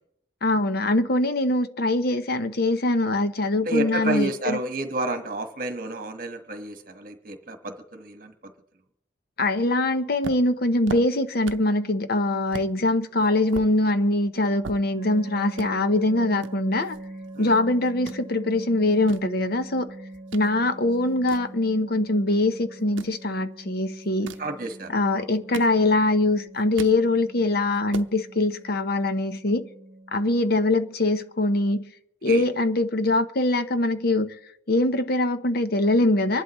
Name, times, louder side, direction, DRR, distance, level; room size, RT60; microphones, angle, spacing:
voice 1, 0.4-4.6 9.4-17.0 17.4-19.9 20.3-24.3 24.9-29.7 30.1-31.9 32.2-34.4 34.7-36.4, left 2 dB, 55° left, 0.8 m, -23 dB
voice 2, 3.6-8.3 17.3-17.5 24.4-25.2 32.2-32.5, right 2 dB, 50° right, 1.4 m, -30 dB
sound 1, 10.2-11.8 12.1-12.2 12.5-12.7 13.2-15.2 15.5-15.7 16.4-17.6 17.8-18.2 18.8-20.5 20.9-22.2 22.8-23.2 24.0-24.5 25.2-26.1 26.5-27.0 27.4-27.5 27.7-28.1, right 4 dB, 80° right, 0.6 m, -39 dB
sound 2, 15.0-30.3, right 1 dB, 30° right, 0.9 m, -42 dB
25.0 x 11.5 x 3.1 m
head